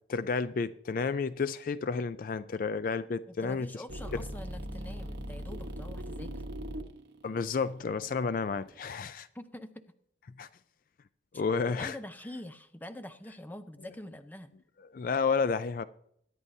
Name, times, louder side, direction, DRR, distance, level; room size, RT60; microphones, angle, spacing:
voice 1, 0.1-3.7 4.1-4.2 7.2-9.3 10.4-10.5 11.3-12.0 14.9-15.8, left 5 dB, 50° left, 0.3 m, -31 dB
voice 2, 3.3-6.4 9.3-9.8 11.6-14.5, left 1 dB, 10° left, 0.6 m, -45 dB
sound 1, 3.9-9.0, equal, 75° right, 1.1 m, -40 dB
22.5 x 9.8 x 2.7 m
head